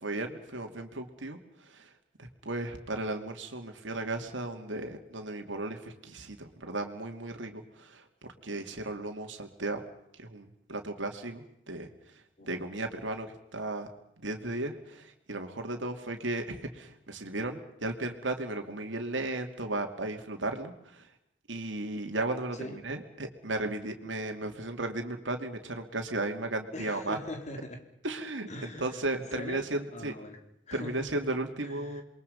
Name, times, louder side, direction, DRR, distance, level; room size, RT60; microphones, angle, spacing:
voice 1, 0.0-1.4 1.7-1.9 2.2-8.0 8.4-9.8 10.2-11.9 12.4-13.9 14.2-21.1 21.5-27.2 28.0-28.5 28.8-30.1 30.7-32.0, right 2 dB, 75° right, 4 dB, 2.8 m, -35 dB
voice 2, 26.7-27.8 28.5-29.0 29.3-31.3 31.6-32.0, left 1 dB, 40° left, 5 dB, 3.2 m, -42 dB
28.0 x 22.5 x 5.5 m, 0.79 s
head